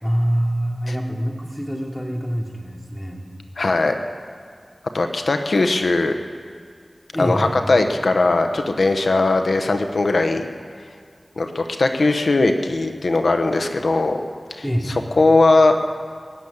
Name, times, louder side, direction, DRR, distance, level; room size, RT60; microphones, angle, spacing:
voice 1, 0.0-3.2 7.1-7.6 14.6-14.9, equal, 5° left, -1 dB, 2.8 m, -25 dB
voice 2, 3.6-3.9 4.9-6.2 7.2-10.5 11.4-14.2 14.5-14.6 15.2-15.8, left 2 dB, 85° left, 6 dB, 0.9 m, -19 dB
21.0 x 7.2 x 9.7 m, 2.1 s
wide cardioid pair, 60°, 0 cm